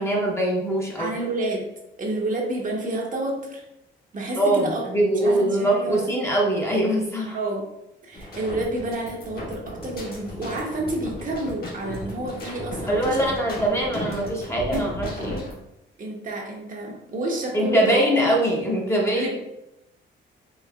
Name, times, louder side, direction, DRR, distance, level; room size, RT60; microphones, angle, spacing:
voice 1, 0.0-1.1 4.4-7.4 12.9-15.5 17.5-19.5, right 1 dB, 15° left, -2 dB, 0.8 m, -23 dB
voice 2, 1.0-1.7 2.0-3.6 4.1-4.9 5.2-6.1 7.3-7.7 8.0-13.3 14.7-14.9 16.0-18.0 19.1-19.4, right 2 dB, 40° right, -1 dB, 0.9 m, -29 dB
sound 1, 8.1-15.6, left 1 dB, 50° left, 1.4 m, -35 dB
4.6 x 3.1 x 2.3 m, 0.87 s
cardioid pair, 90°, 20 cm